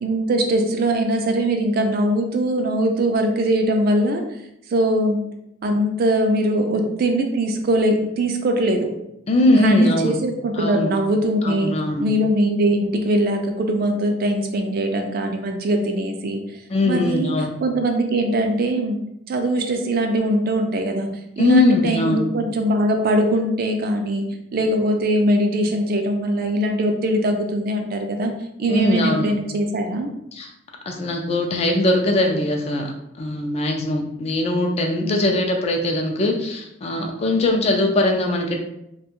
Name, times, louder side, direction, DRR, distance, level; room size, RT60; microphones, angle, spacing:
voice 1, 0.0-4.2 4.7-5.2 5.6-8.9 9.5-11.7 12.0-16.4 16.9-17.3 17.6-19.0 19.3-21.1 21.4-24.3 24.5-28.3 28.6-30.1 35.0-35.3, right 1 dB, 50° right, 4 dB, 0.4 m, -21 dB
voice 2, 9.3-10.2 10.5-10.9 11.4-12.1 16.7-17.5 21.4-22.2 28.7-29.3 30.3-30.5 30.9-32.9 33.2-38.6, left 1 dB, 35° left, 2 dB, 0.3 m, -20 dB
2.4 x 2.2 x 2.9 m, 0.79 s
head